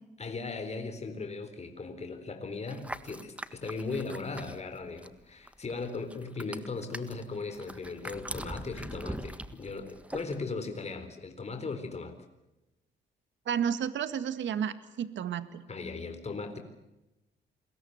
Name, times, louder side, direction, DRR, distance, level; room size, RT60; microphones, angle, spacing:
voice 1, 0.2-12.1 15.7-16.6, left 4 dB, 35° left, 7 dB, 4.0 m, -38 dB
sound 1, 2.7-5.2 5.5-10.4, right 1 dB, 5° right, 1.6 m, -42 dB
voice 2, 13.5-15.6, right 8 dB, 70° right, 12 dB, 2.0 m, -32 dB
28.5 x 21.0 x 8.1 m, 0.99 s
cardioid pair, 90°, 20 cm